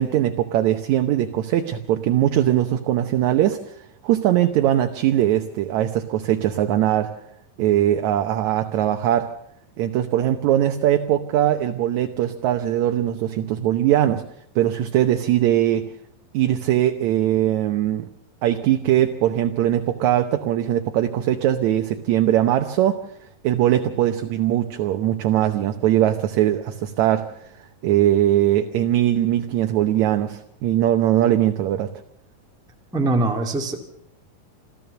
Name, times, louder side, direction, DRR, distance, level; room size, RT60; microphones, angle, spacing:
voice 1, 0.0-3.6 4.0-7.1 7.6-9.3 9.8-14.2 14.6-15.9 16.3-18.1 18.4-23.0 23.4-27.3 27.8-31.9, right 12 dB, 70° right, 7 dB, 1.9 m, -20 dB
voice 2, 32.9-33.8, right 2 dB, ahead, 2 dB, 1.4 m, -22 dB
27.0 x 14.0 x 6.9 m, 0.72 s
omnidirectional pair, 4.1 m